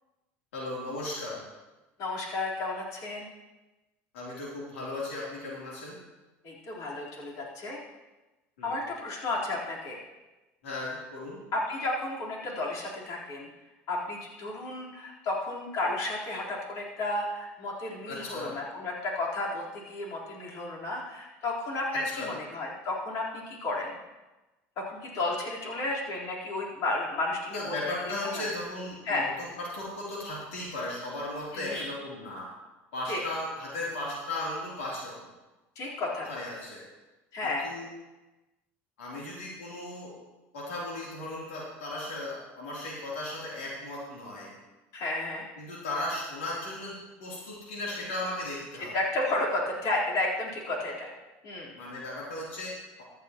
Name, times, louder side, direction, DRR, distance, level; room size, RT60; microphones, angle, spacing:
voice 1, 0.5-1.4 4.1-6.0 8.6-8.8 10.6-11.4 18.1-18.5 22.1-22.3 27.5-32.5 32.9-35.3 36.1-36.8 37.4-37.9 39.0-40.1 40.5-44.5 45.6-48.9 51.7-53.1, left 2 dB, 90° left, -6 dB, 3.3 m, -36 dB
voice 2, 2.0-3.3 6.4-7.8 8.6-10.0 11.5-13.5 13.9-24.0 24.8-28.0 28.2-28.4 29.0-29.3 31.5-31.9 33.1-33.2 35.8-36.3 37.3-37.7 44.9-45.5 48.8-51.1 51.4-51.7, left 2 dB, 60° left, -4 dB, 4.0 m, -32 dB
15.0 x 11.5 x 3.0 m, 1.1 s
hypercardioid pair, 85°, 7 cm